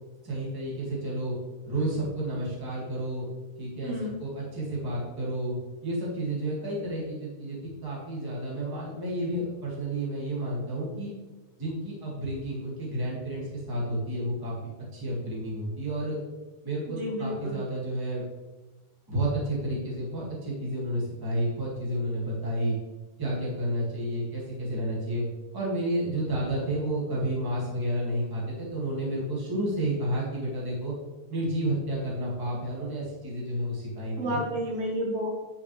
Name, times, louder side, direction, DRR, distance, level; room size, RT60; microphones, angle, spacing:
voice 1, 0.2-1.3 1.6-3.3 3.6-3.9 4.2-5.5 5.8-11.1 11.6-14.5 14.9-16.2 16.6-18.2 19.1-22.7 23.2-25.2 25.5-30.9 31.3-34.4, right 1 dB, 10° right, -5 dB, 1.4 m, -31 dB
voice 2, 3.8-4.2 16.9-17.6 34.2-35.3, equal, 60° right, -1 dB, 2.1 m, -31 dB
9.0 x 5.8 x 3.2 m, 1.1 s
omnidirectional pair, 3.4 m